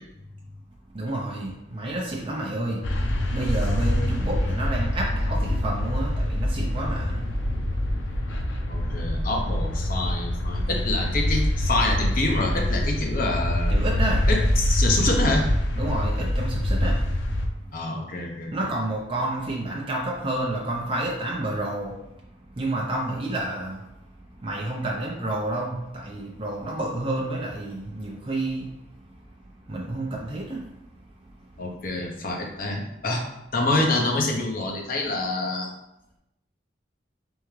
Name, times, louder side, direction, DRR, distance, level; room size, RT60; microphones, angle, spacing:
voice 1, 0.9-2.8 3.3-7.3 13.7-14.2 15.8-17.0 18.5-22.0 22.6-23.9 24.4-28.7 29.7-30.6, right 1 dB, 30° right, -2 dB, 0.5 m, -29 dB
sound 1, 2.8-17.5, left 1 dB, 85° left, 0.6 m, -25 dB
voice 2, 8.7-13.8 14.3-15.5 17.7-18.7 31.6-33.2 33.5-35.7, left 2 dB, 50° left, 1 dB, 0.7 m, -26 dB
3.6 x 3.4 x 3.1 m, 0.87 s
head